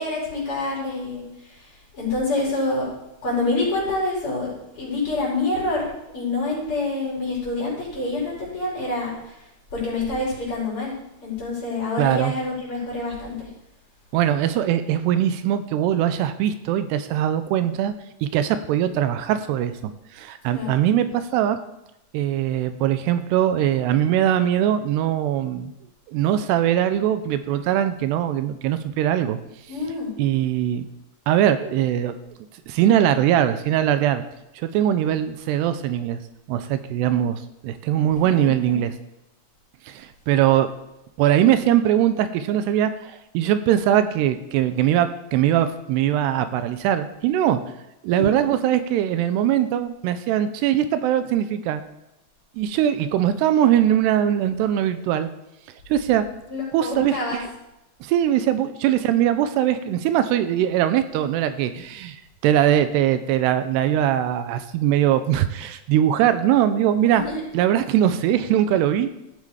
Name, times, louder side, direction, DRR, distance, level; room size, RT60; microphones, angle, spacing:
voice 1, 0.0-2.9 3.2-4.5 4.8-5.9 6.1-9.4 9.7-10.9 11.2-13.5 20.5-20.7 29.7-30.1 38.2-38.8 48.1-48.2 56.5-57.4 67.1-67.4, left 2 dB, 30° left, -5 dB, 5.7 m, -27 dB
voice 2, 12.0-12.3 14.1-17.9 18.2-21.6 22.1-25.7 26.1-29.4 30.2-30.9 31.3-32.1 32.7-34.2 34.6-36.2 36.5-38.9 39.9-40.7 41.2-47.6 48.0-51.8 52.6-55.3 55.9-56.3 56.7-57.5 58.0-67.2 67.5-69.1, right 11 dB, 85° right, 11 dB, 2.7 m, -21 dB
15.0 x 7.8 x 5.0 m, 0.90 s
omnidirectional pair, 4.9 m